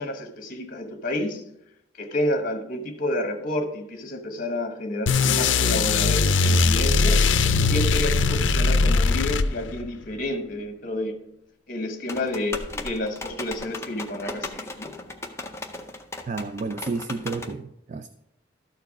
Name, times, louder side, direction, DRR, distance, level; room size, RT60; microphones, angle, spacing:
voice 1, 0.0-1.4 2.0-11.2 11.7-14.9, left 1 dB, 45° left, 1.2 m, -30 dB
sound 1, 5.1-9.9, left 4 dB, 70° left, 0.5 m, -20 dB
sound 2, 12.1-17.5, left 2 dB, 15° left, 0.6 m, -36 dB
voice 2, 16.3-18.1, right 4 dB, 40° right, 0.3 m, -31 dB
13.0 x 4.6 x 4.8 m
head